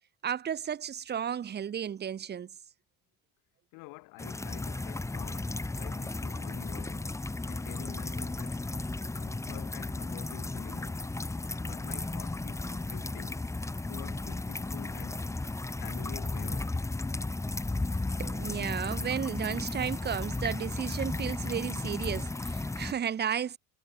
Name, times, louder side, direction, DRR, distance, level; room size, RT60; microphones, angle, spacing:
voice 1, 0.2-2.5 18.2-23.6, right 8 dB, 30° right, 0.7 m, -33 dB
voice 2, 3.7-7.2 7.4-8.7 9.1-11.1 11.6-13.5 13.9-15.3 15.8-16.8, left 27 dB, 85° left, 5.4 m, -48 dB
sound 1, 4.2-22.9, left 2 dB, 10° left, 0.8 m, -34 dB
supercardioid pair, 90°, 33 cm